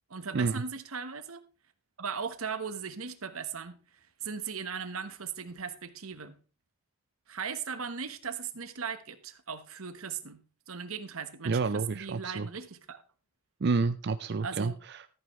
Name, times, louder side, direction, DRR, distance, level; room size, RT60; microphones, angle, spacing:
voice 1, 0.1-1.4 2.0-6.4 7.3-13.0 14.4-14.7, right 6 dB, 85° right, 1.2 m, -38 dB
voice 2, 11.4-12.5 13.6-15.1, right 4 dB, 50° right, 0.5 m, -29 dB
13.5 x 9.0 x 3.2 m
head